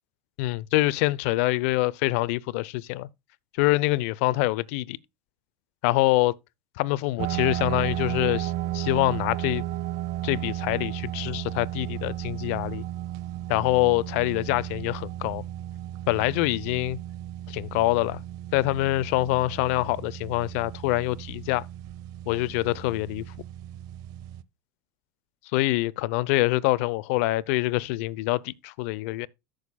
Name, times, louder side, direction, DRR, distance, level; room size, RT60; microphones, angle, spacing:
voice 1, 0.4-3.1 3.6-5.0 5.8-6.3 6.8-9.6 10.2-12.8 13.5-15.4 16.1-17.0 17.5-18.2 18.5-21.6 22.3-23.2 25.5-29.3, left 19 dB, 70° left, 0.6 m, -25 dB
sound 1, 7.2-24.4, right 13 dB, 60° right, 0.7 m, -34 dB
14.0 x 6.4 x 2.2 m
supercardioid pair, 100°, 7 cm